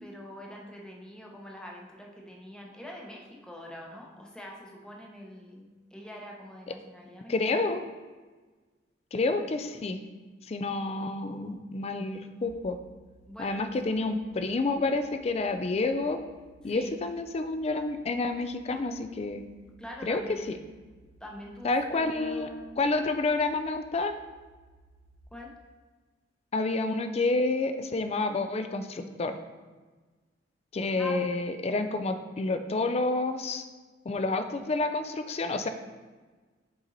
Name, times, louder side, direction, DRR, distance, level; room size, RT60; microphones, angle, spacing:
voice 1, 0.0-7.7 13.3-14.0 14.3-14.6 16.6-16.9 19.8-20.6 21.2-22.8 25.3-25.5 31.0-31.3, equal, 5° left, -1 dB, 0.8 m, -44 dB
voice 2, 7.3-7.8 9.1-10.0 10.5-12.8 13.4-16.2 16.6-19.4 20.0-20.2 20.5-20.6 21.6-22.5 22.8-24.1 26.5-29.4 30.7-33.6 34.1-35.7, left 3 dB, 35° left, 8 dB, 0.4 m, -29 dB
sound 1, 12.4-25.2, right 2 dB, 30° right, 1.1 m, -59 dB
5.4 x 4.3 x 4.0 m, 1.3 s
head